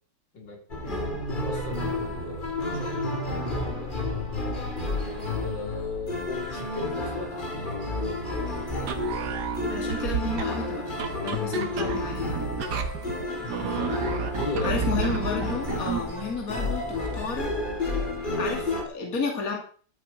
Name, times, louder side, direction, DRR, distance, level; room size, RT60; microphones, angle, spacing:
sound 1, 0.7-18.8, left 2 dB, 25° left, 2.5 m, -31 dB
voice 1, 0.8-1.2 9.7-12.4 14.6-17.6 18.4-19.6, left 4 dB, 50° left, 2 dB, 3.0 m, -32 dB
voice 2, 1.4-3.9 5.2-7.8 8.4-8.9 13.4-14.0 14.4-14.8, left 2 dB, 75° left, 1 dB, 3.6 m, -37 dB
sound 2, 8.8-16.1, right 5 dB, 65° right, 1.9 m, -31 dB
13.0 x 8.6 x 5.1 m, 0.42 s
omnidirectional pair, 2.0 m